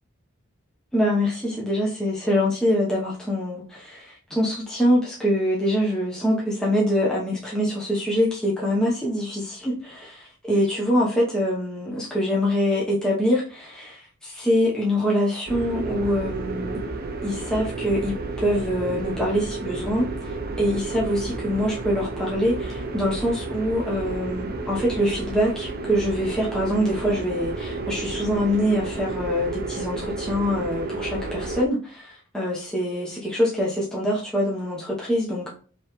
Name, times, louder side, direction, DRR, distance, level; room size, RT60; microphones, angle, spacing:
voice 1, 0.9-16.8 17.2-35.5, equal, 5° left, 0.9 m, -24 dB
sound 1, 15.5-31.7, right 3 dB, 45° right, 0.6 m, -31 dB
5.4 x 3.1 x 3.1 m
head